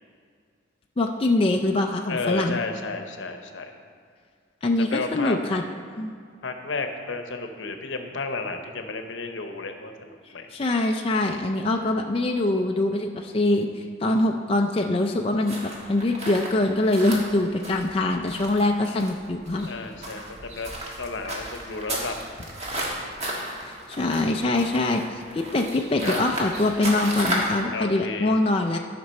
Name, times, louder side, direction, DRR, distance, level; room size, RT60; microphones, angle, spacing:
voice 1, 1.0-2.6 4.6-5.6 6.0-6.1 10.2-19.7 23.6-28.8, left 2 dB, 30° left, 2 dB, 0.4 m, -24 dB
voice 2, 2.1-3.7 4.8-5.4 6.4-10.5 17.0-17.3 19.6-20.7 21.0-22.2 26.0-26.2 27.7-28.3, left 3 dB, 75° left, 6 dB, 0.8 m, -32 dB
sound 1, 15.4-27.6, right 1 dB, 35° right, 1.5 m, -33 dB
12.5 x 5.9 x 4.2 m, 2.2 s
head